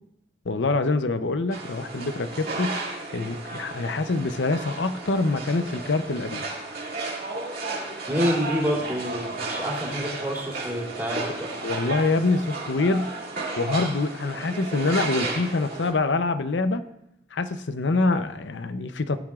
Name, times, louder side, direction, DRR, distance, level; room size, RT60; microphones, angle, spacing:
voice 1, 0.5-2.8 3.1-6.4 11.6-13.1 13.6-16.8 17.3-19.2, left 3 dB, 75° left, 11 dB, 0.7 m, -25 dB
sound 1, 1.5-15.9, right 3 dB, 55° right, 2.3 m, -33 dB
voice 2, 8.1-11.5, equal, 15° right, -4 dB, 2.7 m, -27 dB
18.0 x 10.5 x 2.4 m, 0.82 s
head